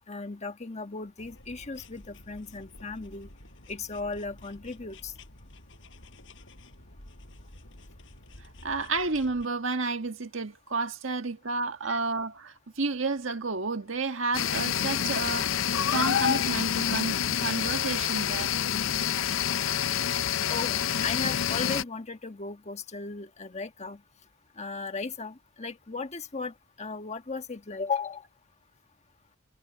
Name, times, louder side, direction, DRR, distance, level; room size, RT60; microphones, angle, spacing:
voice 1, 0.1-3.3 3.7-5.1 11.9-12.0 20.5-24.0 24.6-28.2, left 4 dB, 35° left, 1.4 m, -36 dB
sound 1, 1.2-9.5, left 1 dB, 70° left, 6.5 m, -51 dB
voice 2, 8.6-15.5 15.9-18.5, right 3 dB, 75° right, 1.7 m, -31 dB
sound 2, 14.3-21.8, left 9 dB, 85° left, 0.6 m, -27 dB
head